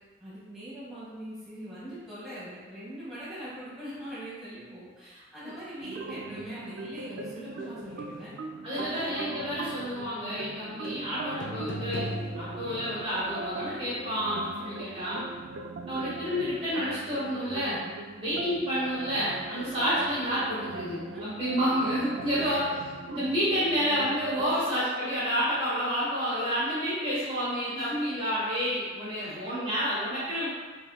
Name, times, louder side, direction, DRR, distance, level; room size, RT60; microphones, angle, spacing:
voice 1, 0.2-8.3 8.7-9.1 19.6-19.9 21.1-21.4 22.3-22.7 24.4-24.8 27.7-28.0 29.2-29.5, right 1 dB, ahead, -12 dB, 1.3 m, -42 dB
sound 1, 5.8-24.5, right 3 dB, 80° right, 0.3 m, -40 dB
voice 2, 8.6-15.2 15.9-17.8 18.1-22.7 23.1-30.5, equal, 30° right, -10 dB, 1.1 m, -29 dB
sound 2, 10.8-11.0 11.4-13.0, equal, 80° left, 0.5 m, -36 dB
5.0 x 2.8 x 2.2 m, 1.4 s
head